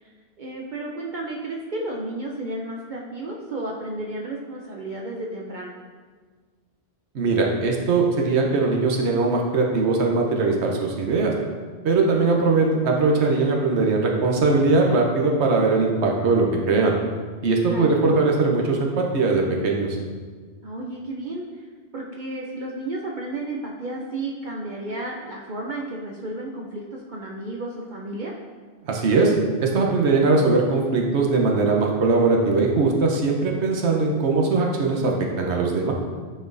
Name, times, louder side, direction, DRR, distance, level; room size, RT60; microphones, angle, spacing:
voice 1, 0.4-5.7 17.7-18.0 20.6-21.4 21.9-28.3, right 2 dB, 50° right, -1 dB, 0.7 m, -32 dB
voice 2, 7.1-11.3 11.8-16.9 17.4-20.0 28.9-29.3 29.6-35.9, right 3 dB, 80° right, 0 dB, 1.1 m, -20 dB
10.0 x 4.3 x 2.6 m, 1.5 s
omnidirectional pair, 1.1 m